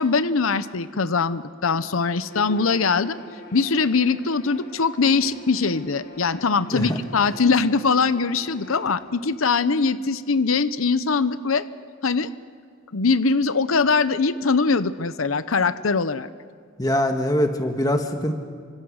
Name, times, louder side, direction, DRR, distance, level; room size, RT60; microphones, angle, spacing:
voice 1, 0.0-3.2 3.5-11.7 12.0-12.3 12.9-16.3, left 4 dB, 90° left, 13 dB, 0.8 m, -22 dB
Bowed string instrument, 2.2-9.0, equal, 50° left, 5.1 m, -44 dB
voice 2, 16.8-18.3, left 1 dB, 20° left, 5 dB, 1.8 m, -23 dB
30.0 x 25.5 x 6.5 m, 2.1 s
head